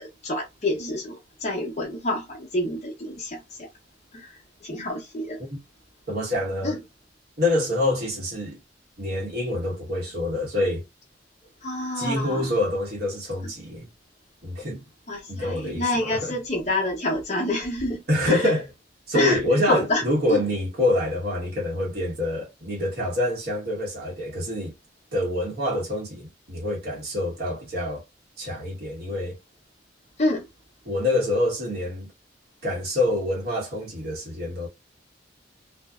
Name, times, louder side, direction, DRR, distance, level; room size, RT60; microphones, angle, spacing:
voice 1, 0.0-3.7 4.1-5.4 6.6-6.8 11.6-12.5 15.1-18.5 19.1-20.0 20.3-20.4 30.2-30.4, left 1 dB, 40° left, 0.9 m, -28 dB
voice 2, 6.1-6.8 7.4-8.6 9.0-10.8 12.0-13.9 14.4-14.8 15.3-16.4 18.1-18.7 19.1-24.7 25.1-28.0 28.4-29.4 30.8-32.1 32.6-34.7, left 1 dB, 55° right, 1.1 m, -26 dB
2.6 x 2.2 x 2.3 m
head